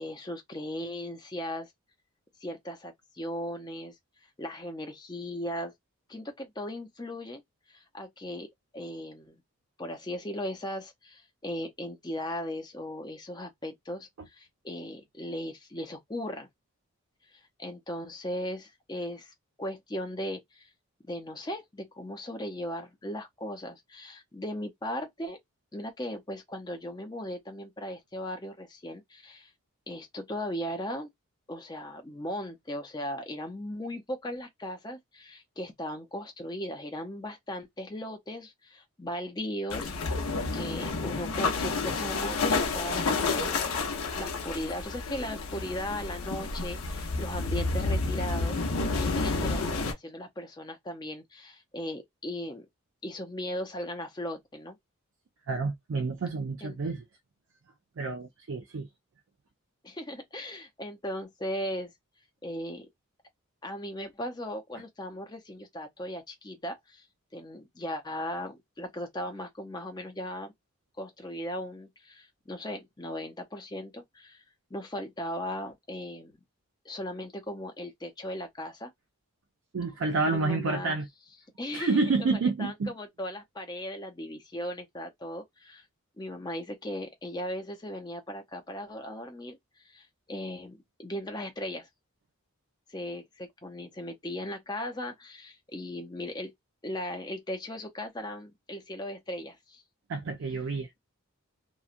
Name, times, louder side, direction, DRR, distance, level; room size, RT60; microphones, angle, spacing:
voice 1, 0.0-1.7 2.4-4.0 4.4-5.7 6.1-7.4 7.7-8.5 8.7-9.4 9.8-16.5 17.6-20.7 21.0-25.4 25.7-29.5 29.9-31.1 31.5-43.6 44.2-48.6 48.9-52.7 53.0-54.8 56.6-56.8 59.8-61.9 62.4-62.9 63.6-67.1 67.3-70.5 71.0-74.4 74.7-76.4 76.8-78.9 80.2-81.0 81.6-82.3 82.6-85.9 86.2-91.9 92.9-96.5 96.8-99.8, equal, 20° left, 0.6 m, -37 dB
sound 1, 39.7-49.9, left 3 dB, 75° left, 0.7 m, -30 dB
voice 2, 55.5-57.0 58.0-58.9 79.7-81.1 81.7-82.9 100.1-100.9, right 3 dB, 65° right, 0.4 m, -29 dB
2.8 x 2.3 x 2.5 m
head